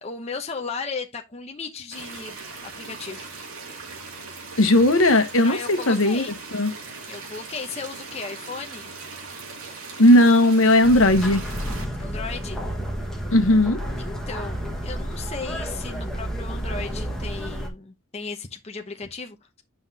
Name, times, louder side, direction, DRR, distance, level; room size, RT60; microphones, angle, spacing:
voice 1, 0.0-2.4 2.6-3.3 5.4-6.4 7.1-8.9 12.0-12.6 14.0-19.6, left 4 dB, 30° left, 0.8 m, -35 dB
sound 1, 1.9-11.9, right 4 dB, 85° right, 2.3 m, -39 dB
voice 2, 4.6-6.7 10.0-11.5 13.3-13.8, left 1 dB, 75° left, 1.2 m, -17 dB
sound 2, 10.8-17.7, equal, 5° left, 1.5 m, -31 dB
8.8 x 5.6 x 2.8 m
head